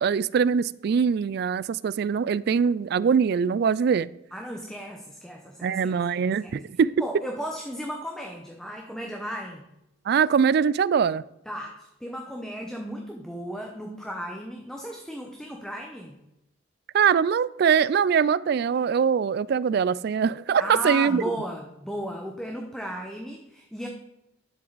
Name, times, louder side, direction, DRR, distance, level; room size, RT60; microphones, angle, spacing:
voice 1, 0.0-4.1 5.6-6.9 10.1-11.2 16.9-21.2, right 6 dB, 60° right, 20 dB, 0.3 m, -22 dB
voice 2, 4.3-6.6 7.0-9.6 11.5-16.2 20.6-23.9, equal, 5° left, 1 dB, 0.9 m, -35 dB
10.5 x 7.6 x 4.0 m, 0.88 s
head